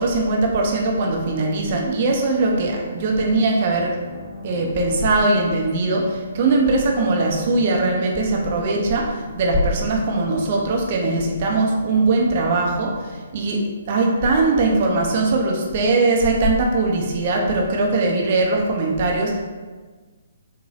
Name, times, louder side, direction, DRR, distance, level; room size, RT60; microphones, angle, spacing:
voice 1, 0.0-4.0 4.4-19.4, right 2 dB, 45° right, 0 dB, 0.7 m, -20 dB
sound 1, 2.9-14.4, left 3 dB, 40° left, 0.7 m, -38 dB
4.9 x 2.3 x 2.7 m, 1.4 s
figure-of-eight pair, 130°, 0 cm